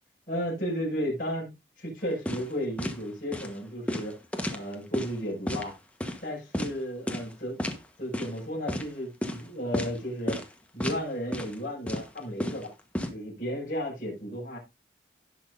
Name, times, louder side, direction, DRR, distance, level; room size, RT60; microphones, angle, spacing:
voice 1, 0.3-1.5 1.8-4.2 4.5-5.7 6.2-7.6 8.0-10.4 10.7-12.7 13.1-14.6, equal, 45° left, -6 dB, 6.2 m, -33 dB
sound 1, 2.3-2.5 2.8-3.0 3.3-3.5 3.9-5.1 5.5-5.7 6.0-6.2 6.5-6.7 7.1-7.3 7.6-7.8 8.1-8.4 8.7-8.9 9.2-9.4 9.7-10.0 10.3-10.5 10.8-11.0 11.3-11.5 11.9-13.1, equal, 5° left, 1.2 m, -31 dB
17.5 x 6.1 x 2.6 m, 0.23 s
head